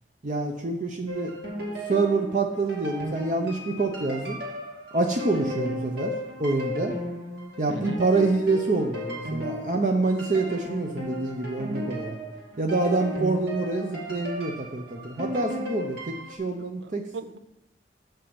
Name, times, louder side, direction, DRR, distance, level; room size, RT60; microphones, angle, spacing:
voice 1, 0.2-1.3 1.9-4.4 4.9-6.1 6.4-6.9 7.6-12.1 12.6-17.0, right 3 dB, 45° right, 3 dB, 0.7 m, -26 dB
sound 1, 1.1-16.4, equal, 70° right, 2.4 m, -35 dB
voice 2, 7.7-8.0 16.6-17.4, right 4 dB, 85° right, 11 dB, 0.6 m, -40 dB
7.0 x 5.6 x 7.1 m, 0.88 s
head